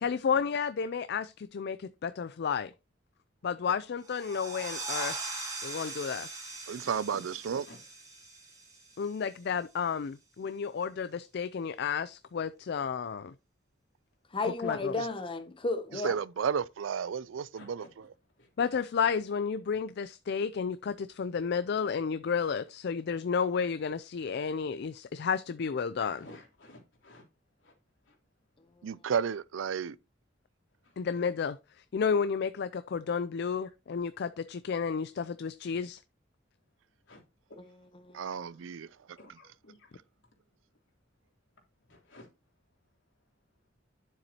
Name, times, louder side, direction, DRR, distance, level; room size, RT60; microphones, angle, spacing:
voice 1, 0.0-2.7 3.4-5.2 5.6-6.3 9.0-13.3 14.4-14.9 18.6-26.3 31.0-36.0, left 6 dB, 60° left, 0.4 m, -32 dB
sound 1, 4.0-9.4, right 3 dB, 20° right, 2.6 m, -40 dB
voice 2, 5.8-6.3 6.7-7.9 8.1-8.2 8.6-8.7 17.5-18.5 26.0-27.3 27.6-28.2 30.8-31.1 33.6-33.7 37.0-37.2 37.5-37.7 38.4-38.8 39.2-40.0 40.3-40.4 41.9-42.3, left 1 dB, 85° left, 3.3 m, -55 dB
voice 3, 6.7-7.6 16.0-17.8 28.8-30.0 38.1-38.9, right 7 dB, 85° right, 0.4 m, -32 dB
voice 4, 14.3-16.2 38.0-38.2, left 3 dB, 25° left, 0.8 m, -33 dB
9.6 x 7.2 x 2.8 m
head